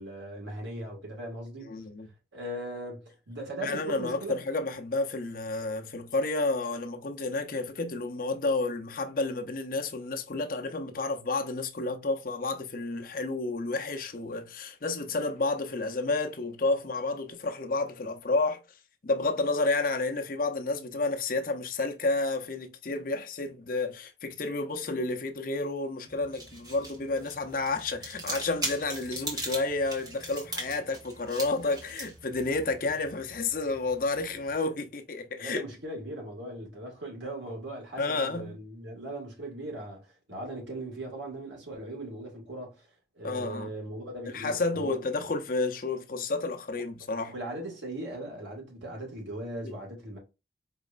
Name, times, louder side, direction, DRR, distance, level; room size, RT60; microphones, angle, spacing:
voice 1, 0.0-1.7 2.3-4.4 35.4-42.9 43.2-45.0 46.7-46.8 47.3-50.2, right 1 dB, 85° right, 2.0 m, -39 dB
voice 2, 1.7-2.1 3.6-18.6 19.0-35.6 38.0-38.6 43.2-43.7 44.2-47.3 49.6-49.7, left 3 dB, 50° left, 0.6 m, -30 dB
sound 1, 26.1-34.5, right 1 dB, 20° right, 1.2 m, -40 dB
4.7 x 3.1 x 2.5 m
head